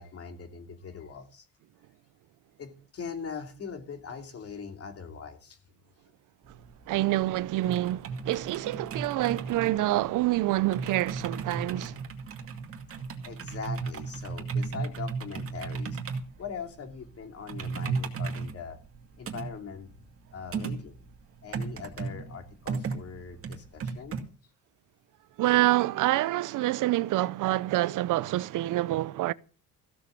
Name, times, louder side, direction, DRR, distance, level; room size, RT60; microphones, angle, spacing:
voice 1, 0.0-1.4 2.6-5.6 13.2-16.0 16.4-18.8 19.2-19.9 20.3-21.0 21.4-24.2, left 6 dB, 40° left, 2.8 m, -41 dB
sound 1, 6.4-24.2, right 4 dB, 40° right, 2.3 m, -36 dB
voice 2, 6.9-12.0 25.4-29.3, right 16 dB, 65° right, 0.6 m, -27 dB
15.5 x 6.9 x 7.5 m
cardioid pair, 135°, 34 cm